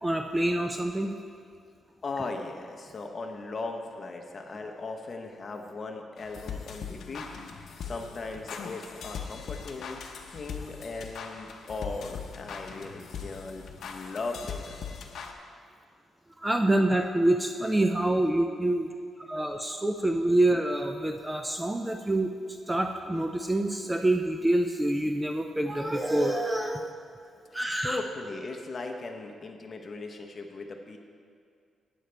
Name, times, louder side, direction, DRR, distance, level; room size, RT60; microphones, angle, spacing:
voice 1, 0.0-1.2 16.4-18.9 19.3-26.8 27.5-28.0, right 1 dB, 10° right, 5 dB, 0.5 m, -26 dB
voice 2, 2.0-7.3 7.8-10.0 10.3-15.0 27.5-31.0, left 3 dB, 35° left, 3 dB, 0.9 m, -38 dB
sound 1, 6.2-15.3, left 6 dB, 65° left, 0.8 m, -40 dB
12.0 x 9.1 x 3.4 m, 2.3 s
cardioid pair, 130°, 0 cm